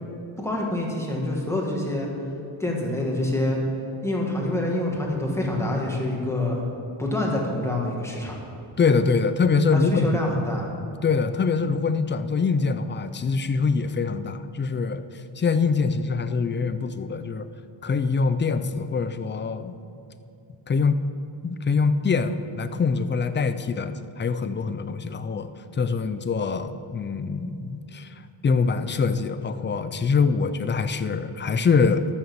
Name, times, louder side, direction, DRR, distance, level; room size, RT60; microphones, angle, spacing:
voice 1, 0.4-2.1 2.6-3.6 4.0-6.6 7.0-8.4 9.7-10.7, left 1 dB, 5° left, -2 dB, 1.7 m, -26 dB
voice 2, 8.8-10.1 11.0-15.0 15.4-17.5 17.8-19.7 20.7-21.0 21.4-28.1 28.4-32.1, left 5 dB, 25° left, 11 dB, 0.3 m, -24 dB
12.5 x 6.6 x 6.9 m, 2.7 s
wide cardioid pair, 160°, 48 cm